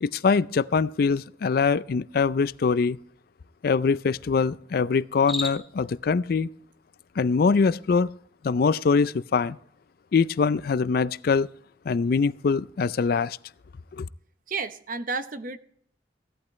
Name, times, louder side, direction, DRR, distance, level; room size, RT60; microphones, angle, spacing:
voice 1, 0.0-3.0 3.6-6.5 7.2-8.1 8.4-9.6 10.1-11.5 11.9-13.4 13.9-14.1, left 5 dB, 55° left, 0.4 m, -23 dB
Cricket, 5.1-5.9, left 1 dB, ahead, 2.5 m, -33 dB
voice 2, 14.5-15.6, right 4 dB, 50° right, 0.8 m, -31 dB
16.5 x 12.0 x 3.2 m
head